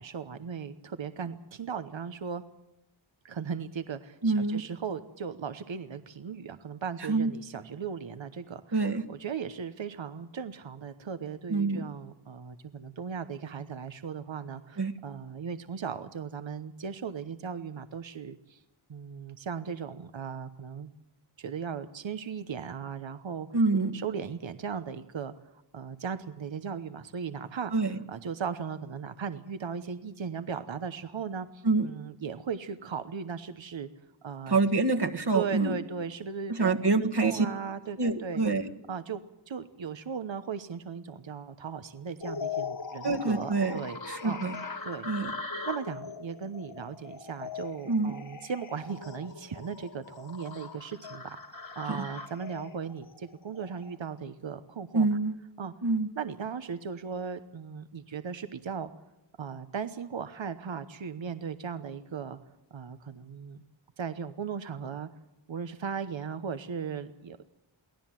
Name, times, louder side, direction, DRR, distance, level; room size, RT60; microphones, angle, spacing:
voice 1, 0.0-2.4 3.2-18.6 18.9-20.9 21.4-23.6 23.9-25.3 25.7-27.7 28.1-33.9 34.2-34.6 35.3-38.4 38.9-39.2 39.5-44.4 44.8-45.1 45.7-55.1 55.6-55.7 56.1-58.9 59.4-62.4 62.7-63.6 64.0-65.1 65.5-67.4, right 6 dB, 75° right, 10 dB, 1.0 m, -37 dB
voice 2, 4.2-4.6 7.1-7.3 8.7-9.0 11.5-11.8 14.8-14.9 23.5-24.0 27.7-28.0 31.6-31.9 34.5-35.7 36.5-37.5 38.0-38.7 43.0-43.8 44.1-44.5 45.1-45.3 47.9-48.1 51.9-52.0 54.9-55.3 55.8-56.1, right 3 dB, 55° right, 6 dB, 1.8 m, -26 dB
sound 1, 42.2-54.0, left 5 dB, 70° left, 3.0 m, -40 dB
23.5 x 17.0 x 7.5 m, 0.91 s
wide cardioid pair, 50°, 47 cm